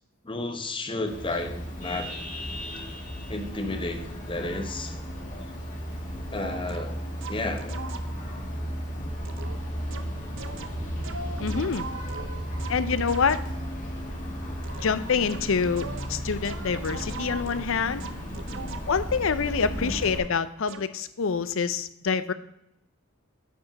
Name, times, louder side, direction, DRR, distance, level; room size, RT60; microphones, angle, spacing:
voice 1, 0.2-2.1 3.3-5.0 6.3-6.9 7.3-7.8 18.5-18.8 19.8-20.0, left 2 dB, 25° left, 6 dB, 1.0 m, -32 dB
Vehicle horn car horn honking, 1.1-20.2, equal, 40° left, 2.2 m, -34 dB
sound 1, 6.4-8.4 9.2-13.7 14.6-19.2 20.0-20.3 20.7-21.0, right 4 dB, 65° right, 0.7 m, -41 dB
voice 2, 11.4-11.9 12.7-13.4 14.8-18.0 18.9-22.3, left 5 dB, 70° left, 14 dB, 0.6 m, -26 dB
9.0 x 5.2 x 5.9 m, 0.82 s
head